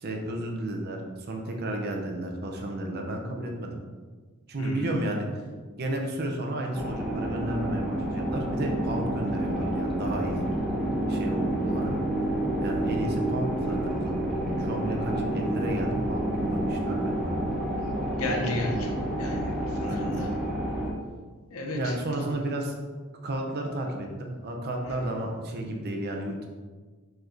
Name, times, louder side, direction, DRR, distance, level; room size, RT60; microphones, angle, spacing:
voice 1, 0.0-3.8 4.5-5.3 5.8-10.4 11.1-11.9 12.6-14.2 14.6-17.4 20.2-20.3 21.7-22.7 23.2-26.5, right 1 dB, 50° right, 2 dB, 0.7 m, -32 dB
voice 2, 4.6-5.0 18.2-20.3 21.5-22.3, left 1 dB, 80° left, 1 dB, 0.8 m, -33 dB
sound 1, 6.7-20.9, right 1 dB, ahead, 0.8 m, -29 dB
4.4 x 4.4 x 2.6 m, 1.4 s
head